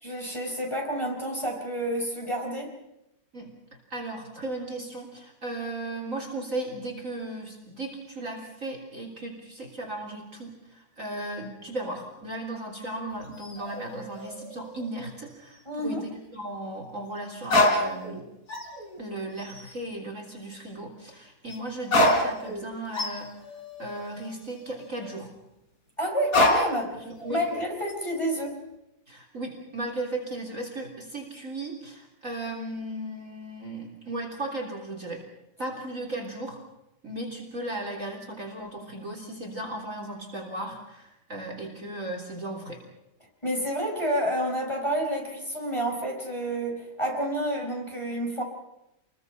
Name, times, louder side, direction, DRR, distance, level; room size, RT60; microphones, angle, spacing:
voice 1, 0.0-2.8 15.7-16.0 26.0-27.0 27.3-28.6 43.4-48.4, equal, 10° left, 0 dB, 5.0 m, -29 dB
voice 2, 3.9-18.2 19.0-23.3 23.8-25.3 26.9-27.4 29.1-35.2 35.6-36.6 37.0-42.8, right 1 dB, 35° right, 2 dB, 3.7 m, -36 dB
sound 1, 13.2-15.2 15.5-15.6 17.4-18.2 18.5-19.0 19.4-19.7 21.5-21.6 21.8-25.2 26.3-26.9 27.2-27.9, left 1 dB, 40° left, 4.0 m, -27 dB
28.5 x 22.0 x 5.7 m, 0.88 s
omnidirectional pair, 2.4 m